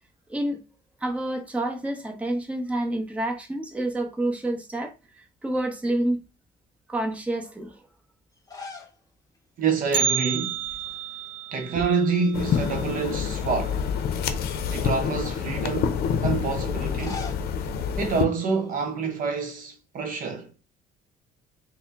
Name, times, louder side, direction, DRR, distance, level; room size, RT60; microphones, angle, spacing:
voice 1, 1.0-4.9 5.4-6.2 6.9-7.8, right 1 dB, 5° right, 0.8 m, -28 dB
sound 1, 8.3-9.0 9.4-9.5 10.8-11.3 11.6-12.7 13.3-13.4 14.3-15.5 16.7-18.9, left 4 dB, 20° left, 0.9 m, -44 dB
voice 2, 9.6-10.6 11.5-13.9 14.7-17.3 18.0-20.5, right 5 dB, 55° right, 0.7 m, -27 dB
Bell, 9.9-14.0 14.3-14.4 14.9-15.0 15.8-15.9 16.6-16.9 17.3-17.4, right 7 dB, 30° right, 1.0 m, -31 dB
sound 2, 12.3-18.3, left 7 dB, 65° left, 0.6 m, -27 dB
4.3 x 2.1 x 3.5 m
cardioid pair, 110°, 17 cm